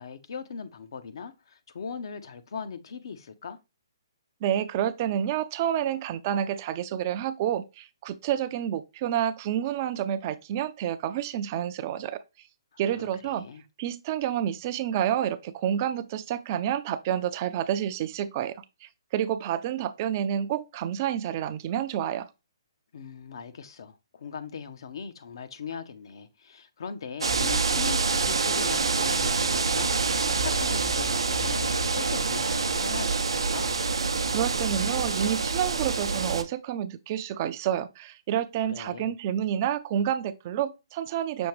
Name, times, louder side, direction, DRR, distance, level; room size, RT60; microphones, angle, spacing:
voice 1, 0.0-3.6 12.7-13.6 22.9-33.8 38.6-39.1, left 6 dB, 65° left, 0.6 m, -40 dB
voice 2, 4.4-12.2 12.8-13.5 13.8-18.6 18.8-22.3 34.3-41.5, right 10 dB, 35° right, 0.3 m, -29 dB
sound 1, 27.2-36.4, right 4 dB, 90° right, 0.5 m, -26 dB
6.2 x 2.8 x 3.1 m
hypercardioid pair, 145°, 3 cm